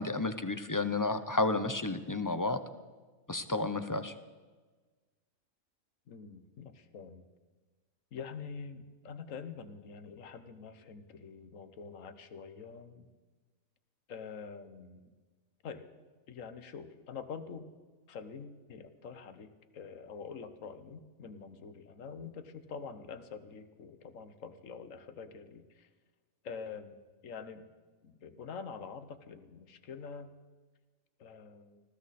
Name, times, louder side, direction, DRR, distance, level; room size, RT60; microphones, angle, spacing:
voice 1, 0.0-2.6 3.3-4.1, left 3 dB, 25° left, 9 dB, 0.4 m, -31 dB
voice 2, 6.1-7.2 8.1-13.1 14.1-15.1 15.6-15.9 16.3-17.7 18.1-25.9 26.4-27.0 27.2-27.7 28.0-30.3 31.2-31.8, left 5 dB, 70° left, 10 dB, 1.4 m, -46 dB
20.0 x 15.0 x 4.2 m, 1.3 s
omnidirectional pair, 1.4 m